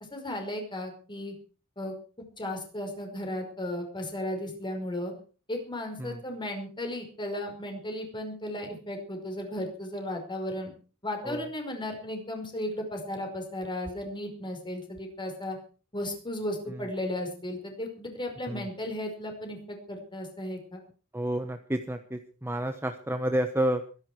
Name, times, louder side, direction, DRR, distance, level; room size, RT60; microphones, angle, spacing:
voice 1, 0.1-1.3 1.8-1.9 2.4-5.1 5.5-10.7 11.0-15.6 15.9-20.8, left 1 dB, 20° left, 3 dB, 5.3 m, -35 dB
voice 2, 21.1-23.8, right 1 dB, 10° right, 7 dB, 1.0 m, -30 dB
23.5 x 11.0 x 4.7 m, 0.39 s
head